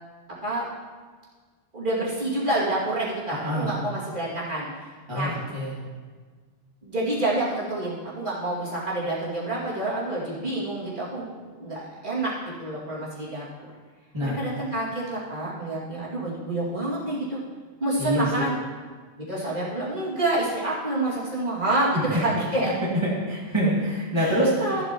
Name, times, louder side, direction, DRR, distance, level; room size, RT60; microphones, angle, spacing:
voice 1, 1.7-4.7 5.1-5.4 6.8-12.3 12.6-13.7 14.2-17.4 17.8-18.6 19.2-22.7 24.2-24.8, right 1 dB, 50° right, -9 dB, 2.6 m, -28 dB
voice 2, 3.3-3.7 5.1-5.8 14.1-14.3 18.0-18.3 22.0-22.1 23.3-24.8, equal, 25° right, -8 dB, 2.1 m, -26 dB
14.0 x 8.1 x 3.0 m, 1.5 s
omnidirectional pair, 1.1 m